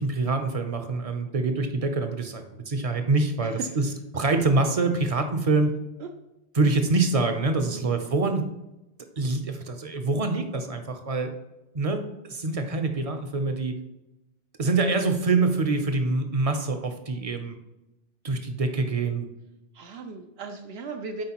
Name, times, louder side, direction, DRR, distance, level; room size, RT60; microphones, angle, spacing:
voice 1, 0.0-5.7 6.5-8.5 9.2-11.3 11.7-13.7 14.6-17.6 18.2-19.3, right 3 dB, 40° right, 7 dB, 0.6 m, -25 dB
voice 2, 19.7-21.2, right 4 dB, 75° right, 4 dB, 0.8 m, -37 dB
7.6 x 4.6 x 2.9 m, 0.93 s
omnidirectional pair, 1.1 m